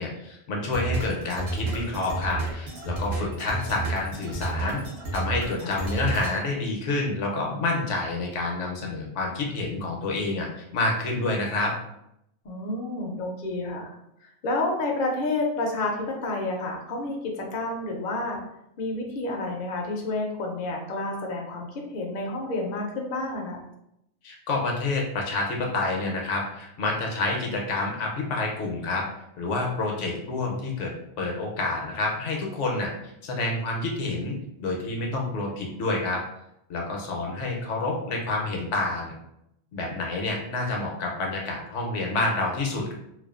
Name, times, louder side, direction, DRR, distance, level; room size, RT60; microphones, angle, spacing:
voice 1, 0.0-4.8 5.1-11.7 24.2-29.1 29.4-32.9 33.2-36.2 36.7-39.1 39.7-42.9, left 2 dB, 75° left, 0 dB, 0.9 m, -28 dB
sound 1, 0.7-6.4, right 3 dB, 60° right, 0.9 m, -31 dB
voice 2, 12.4-13.9 14.4-18.4 18.8-23.6, left 2 dB, 60° left, 0 dB, 0.5 m, -30 dB
2.4 x 2.2 x 2.3 m, 0.79 s
omnidirectional pair, 1.3 m